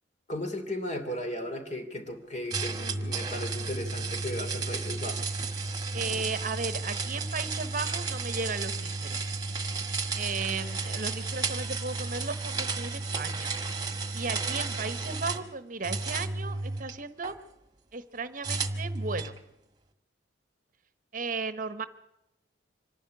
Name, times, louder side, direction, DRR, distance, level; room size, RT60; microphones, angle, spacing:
voice 1, 0.3-5.4, left 1 dB, 40° left, 6 dB, 2.7 m, -36 dB
sound 1, 2.5-15.5 15.8-17.3 18.4-19.4, right 3 dB, 20° right, 1.6 m, -33 dB
voice 2, 5.9-9.2 10.1-13.5 14.1-17.4 17.9-19.3 21.1-21.9, right 4 dB, 45° right, 12 dB, 1.0 m, -35 dB
26.0 x 11.5 x 9.6 m, 0.87 s
head